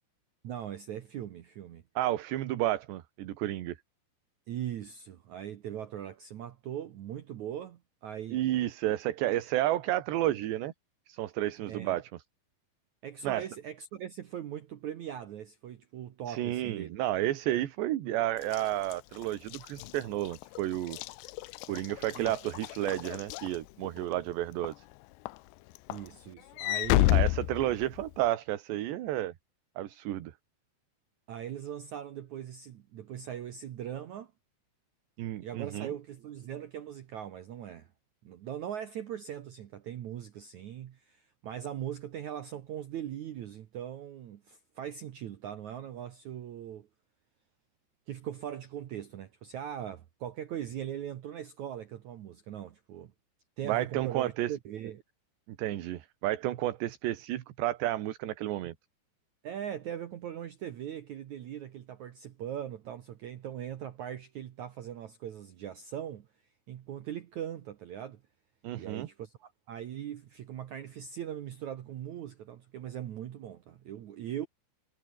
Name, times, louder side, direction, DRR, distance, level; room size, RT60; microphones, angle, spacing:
voice 1, 0.4-1.8 4.5-8.4 11.7-12.0 13.0-17.0 22.1-22.3 25.9-27.1 31.3-34.3 35.4-37.9 38.2-46.9 48.1-53.1 53.6-55.0 59.4-66.3 66.7-68.2 68.8-74.5, right 10 dB, 85° right, 1.6 m, -40 dB
voice 2, 2.0-3.8 8.3-10.7 11.1-12.1 13.2-13.5 16.3-21.0 21.7-24.8 27.1-29.3 29.8-30.3 35.2-35.9 53.6-54.5 55.5-58.7 68.6-69.1, right 14 dB, 70° right, 3.6 m, -31 dB
Walk footsteps / Slam, 18.4-24.1 24.6-24.9 25.3-28.3, left 20 dB, 80° left, 2.7 m, -31 dB
omnidirectional pair, 5.4 m